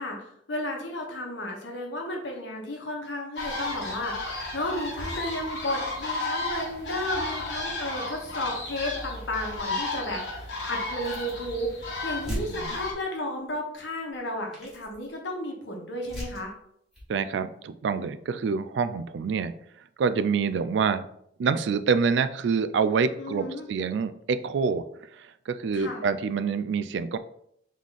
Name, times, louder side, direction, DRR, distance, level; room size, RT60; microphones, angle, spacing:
voice 1, 0.0-16.5 23.2-23.7 25.7-26.0, left 1 dB, 85° left, 1 dB, 1.1 m, -33 dB
sound 1, 3.4-12.9, left 2 dB, 70° left, 1.4 m, -33 dB
sound 2, 11.0-11.5 11.8-11.9 12.2-13.2 14.1-14.2 14.5-15.1 16.0-16.5 16.9-17.1, equal, ahead, 1.8 m, -39 dB
voice 2, 12.3-12.8 17.1-19.5 20.0-21.1 21.4-24.8 25.1-27.2, right 5 dB, 75° right, 12 dB, 0.3 m, -26 dB
3.7 x 3.2 x 3.9 m, 0.72 s
head